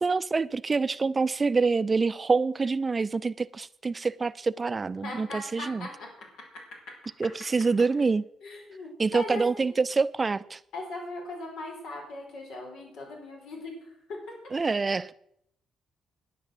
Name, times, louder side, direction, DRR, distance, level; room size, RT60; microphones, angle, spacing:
voice 1, 0.0-5.9 7.2-8.2 9.0-10.6 14.5-15.1, right 4 dB, 30° right, 0.6 m, -26 dB
voice 2, 5.0-6.1 8.4-9.4 10.7-13.7 14.1-14.4, left 2 dB, 80° left, 5.1 m, -39 dB
10.5 x 10.0 x 7.8 m
cardioid pair, 90°, 0 cm